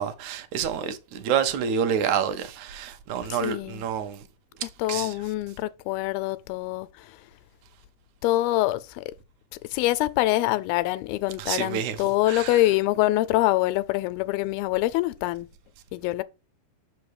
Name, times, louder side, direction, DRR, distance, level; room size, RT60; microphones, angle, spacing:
voice 1, 0.0-4.2 4.9-5.1 11.4-12.0 12.3-12.6, right 8 dB, 75° right, 1.7 m, -28 dB
voice 2, 3.3-3.9 4.8-6.9 8.2-9.0 9.7-15.5 15.9-16.2, left 17 dB, 90° left, 2.4 m, -25 dB
6.5 x 5.6 x 4.8 m
omnidirectional pair, 4.3 m